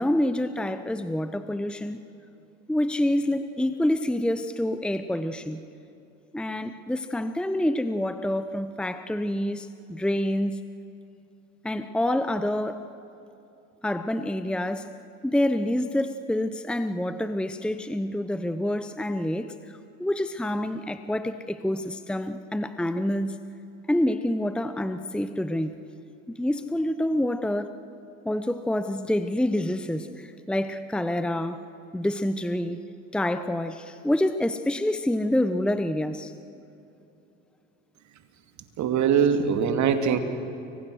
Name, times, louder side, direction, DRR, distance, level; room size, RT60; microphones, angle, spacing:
voice 1, 0.0-2.0 2.7-5.6 6.3-10.6 11.6-12.9 13.8-14.9 15.2-23.4 23.9-25.8 26.4-27.7 28.2-31.6 31.9-32.8 33.1-36.3, left 1 dB, 5° left, 10 dB, 1.0 m, -27 dB
voice 2, 38.8-40.2, right 7 dB, 50° right, 7 dB, 2.5 m, -22 dB
29.5 x 23.5 x 6.4 m, 2.8 s
hypercardioid pair, 80°, 37 cm